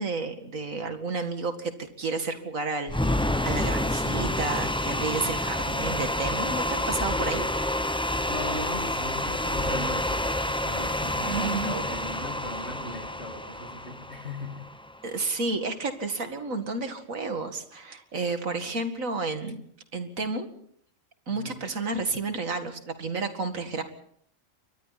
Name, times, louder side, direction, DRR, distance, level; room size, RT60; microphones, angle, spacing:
voice 1, 0.0-7.5 11.2-11.8 15.0-19.6 19.9-20.5 21.3-23.8, right 3 dB, 80° right, 7 dB, 2.5 m, -31 dB
sound 1, 2.9-15.0, left 1 dB, 5° left, 0.5 m, -28 dB
voice 2, 8.0-14.7 21.3-21.6, left 2 dB, 55° left, 3 dB, 2.6 m, -38 dB
29.0 x 23.5 x 4.2 m, 0.64 s
omnidirectional pair, 1.4 m